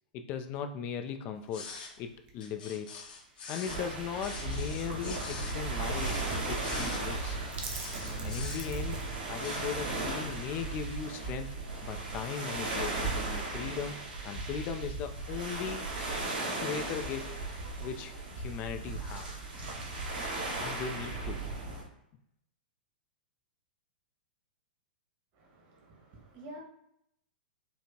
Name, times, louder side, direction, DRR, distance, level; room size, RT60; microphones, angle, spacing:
voice 1, 0.1-1.7 2.0-3.0 3.5-6.2 6.5-7.4 8.2-11.5 11.8-14.0 14.2-15.8 16.6-17.4 17.8-19.3 20.6-21.4, left 7 dB, 35° left, 6 dB, 0.3 m, -38 dB
sound 1, 1.4-9.6, right 4 dB, 30° right, 0.7 m, -48 dB
sound 2, 1.5-1.9 2.4-3.8 4.2-5.6 5.9-7.0 7.6-8.9 9.4-9.7, left 4 dB, 65° left, 0.9 m, -44 dB
sound 3, 3.6-21.8, right 2 dB, 70° right, 1.3 m, -36 dB
voice 2, 25.3-26.6, right 1 dB, 45° right, 0 dB, 1.2 m, -49 dB
4.5 x 2.4 x 2.7 m, 0.78 s
hypercardioid pair, 110°, 5 cm